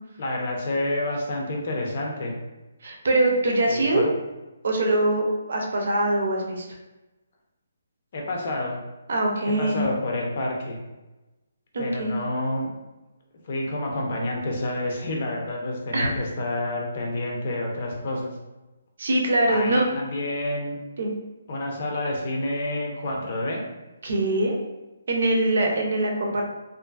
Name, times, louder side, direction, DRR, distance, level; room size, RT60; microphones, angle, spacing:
voice 1, 0.2-2.4 3.7-4.2 8.1-8.8 9.5-10.8 11.8-12.7 13.4-18.4 19.5-20.8 21.5-23.6, left 1 dB, 45° left, 0 dB, 0.6 m, -29 dB
voice 2, 2.8-4.0 4.6-6.7 9.1-9.8 11.7-12.1 15.9-16.1 19.0-19.9 21.0-21.1 24.0-24.6 25.1-26.4, right 1 dB, 65° right, 0 dB, 0.6 m, -23 dB
2.5 x 2.5 x 2.3 m, 1.1 s
hypercardioid pair, 165°, 0 cm